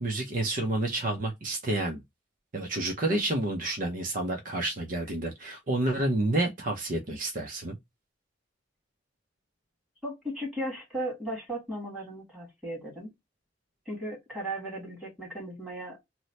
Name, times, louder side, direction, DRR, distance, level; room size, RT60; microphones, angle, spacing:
voice 1, 0.0-2.0 2.5-7.8, right 2 dB, 45° right, 0.6 m, -29 dB
voice 2, 10.0-13.1 13.9-16.0, right 1 dB, 5° right, 1.7 m, -36 dB
2.9 x 2.1 x 4.0 m
head